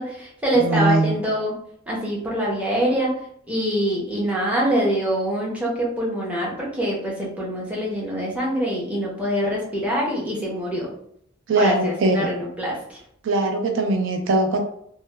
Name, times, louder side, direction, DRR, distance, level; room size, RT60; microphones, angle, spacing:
voice 1, 0.0-1.6 1.9-3.2 3.5-10.9 11.6-13.0, right 1 dB, 5° right, -5 dB, 0.6 m, -24 dB
voice 2, 0.5-1.1 11.5-12.3 13.2-14.6, right 2 dB, 70° right, 4 dB, 0.3 m, -21 dB
2.7 x 2.0 x 2.2 m, 0.69 s
head